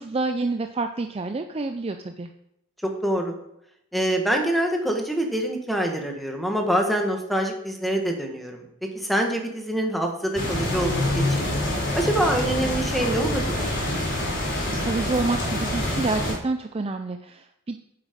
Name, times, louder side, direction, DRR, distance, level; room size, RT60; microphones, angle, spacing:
voice 1, 0.0-2.3 14.8-17.8, right 3 dB, 25° right, 7 dB, 0.4 m, -28 dB
voice 2, 2.8-3.3 3.9-8.6 8.9-11.5 11.9-13.7, right 1 dB, ahead, 2 dB, 1.3 m, -25 dB
sound 1, 10.3-16.3, left 1 dB, 55° left, 3.6 m, -26 dB
8.8 x 7.4 x 5.1 m, 0.79 s
head